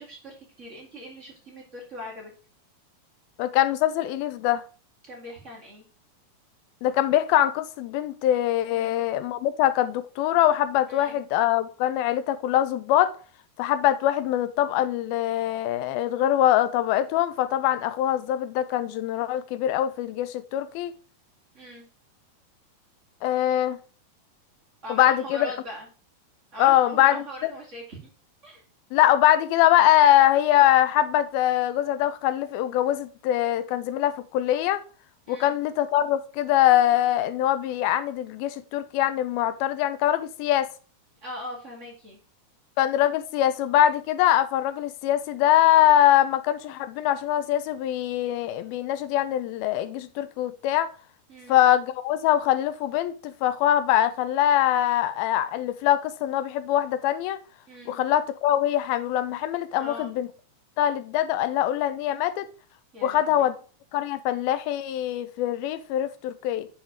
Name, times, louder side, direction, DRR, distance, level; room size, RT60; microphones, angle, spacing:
voice 1, 0.0-2.3 5.0-5.8 8.7-9.0 10.9-11.2 21.5-21.8 24.8-25.9 26.5-28.0 28.4-28.6 35.3-35.5 41.2-42.2 51.3-51.6 57.7-58.0 59.7-60.1 62.9-63.5, equal, 25° right, 1.9 m, -40 dB
voice 2, 3.4-4.6 6.8-13.1 13.6-20.9 23.2-23.8 24.9-25.5 26.6-27.5 28.9-34.8 35.3-40.7 42.8-50.9 51.5-57.4 57.9-60.3 60.8-62.5 63.0-63.6 63.9-66.7, left 12 dB, 80° left, 2.4 m, -23 dB
7.2 x 4.6 x 5.0 m
omnidirectional pair, 4.4 m